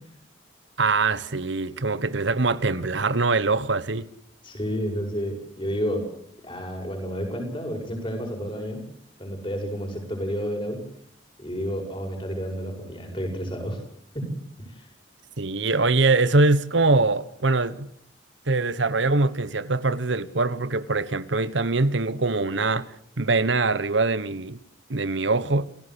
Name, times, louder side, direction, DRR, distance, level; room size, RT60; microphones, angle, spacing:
voice 1, 0.8-4.1 15.4-17.9 18.5-24.6 24.9-25.7, right 3 dB, 75° right, 1.2 m, -23 dB
voice 2, 4.4-6.1 6.4-8.8 9.2-10.8 11.4-13.8 14.1-14.3 14.7-14.9, equal, 25° left, 7.6 m, -30 dB
28.5 x 17.0 x 8.1 m
head